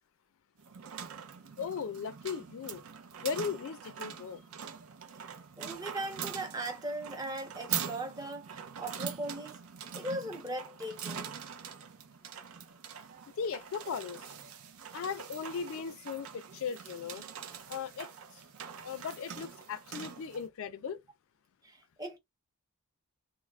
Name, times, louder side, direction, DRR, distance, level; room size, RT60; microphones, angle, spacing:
sound 1, 0.6-20.5, right 7 dB, 65° right, 0.5 m, -43 dB
voice 1, 1.6-2.8 3.2-4.4 13.4-14.3 14.9-17.3 17.7-18.4 18.8-21.0, left 6 dB, 60° left, 0.3 m, -37 dB
voice 2, 5.6-9.6 9.9-11.3 21.6-22.2, right 1 dB, 15° right, 0.7 m, -39 dB
2.3 x 2.0 x 3.1 m
head